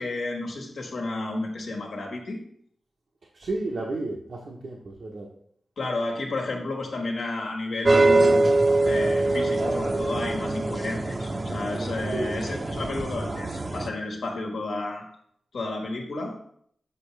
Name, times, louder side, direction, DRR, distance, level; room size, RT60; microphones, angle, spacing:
voice 1, 0.0-2.4 5.8-8.4 8.9-15.0 15.5-16.3, left 2 dB, 80° left, 0 dB, 1.4 m, -31 dB
voice 2, 3.3-5.3 12.1-12.4, right 2 dB, 70° right, -2 dB, 0.9 m, -32 dB
sound 1, 7.8-13.9, right 2 dB, 40° right, 0.6 m, -23 dB
6.7 x 4.9 x 3.2 m, 0.67 s
cardioid pair, 55°, 0 cm